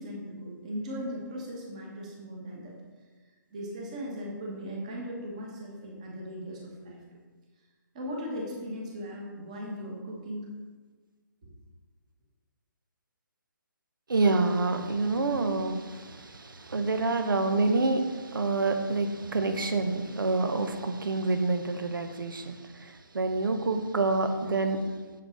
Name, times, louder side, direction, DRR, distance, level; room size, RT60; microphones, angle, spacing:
voice 1, 0.0-2.7 3.5-7.0 7.9-10.5 11.4-11.5, equal, 20° right, -2 dB, 1.2 m, -38 dB
voice 2, 14.1-24.8, right 3 dB, 90° right, 7 dB, 1.2 m, -27 dB
7.6 x 7.4 x 4.5 m, 1.4 s
hypercardioid pair, 180°, 11 cm